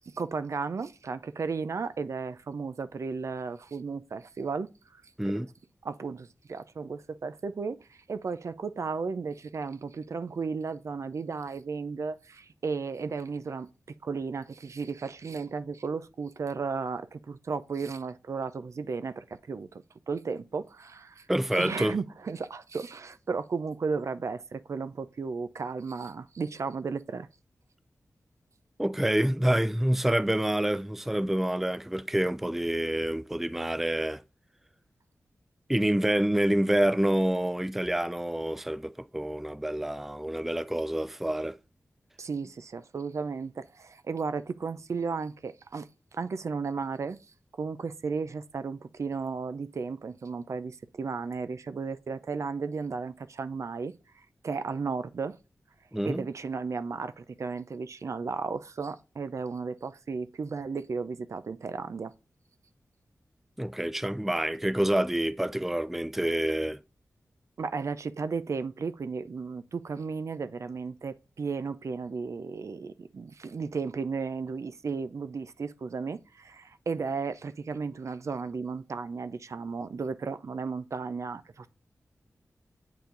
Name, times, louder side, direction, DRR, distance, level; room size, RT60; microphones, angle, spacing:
voice 1, 0.1-4.7 5.8-13.7 14.0-21.3 21.5-27.3 42.2-47.2 47.6-53.9 54.4-55.4 56.1-62.1 67.6-81.7, right 5 dB, 65° right, 0.6 m, -34 dB
voice 2, 21.3-22.0 28.8-34.2 35.7-41.6 55.9-56.2 63.6-66.8, right 1 dB, 5° right, 0.4 m, -27 dB
8.6 x 4.8 x 3.9 m
wide cardioid pair, 80°, 6 cm